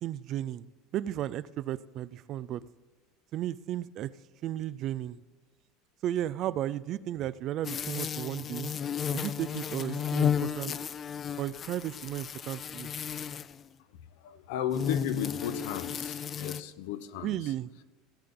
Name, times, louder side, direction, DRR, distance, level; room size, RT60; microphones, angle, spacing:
voice 1, 0.0-2.7 3.3-4.1 4.4-5.2 6.0-8.7 9.1-10.7 11.4-12.9 17.2-17.8, right 12 dB, 40° right, 17 dB, 0.4 m, -34 dB
sound 1, 7.6-13.6 14.7-16.6, left 8 dB, 25° left, 0.3 m, -33 dB
voice 2, 14.2-17.5, left 10 dB, 75° left, 12 dB, 0.9 m, -35 dB
17.5 x 8.7 x 3.7 m, 1.3 s
cardioid pair, 155°, 0 cm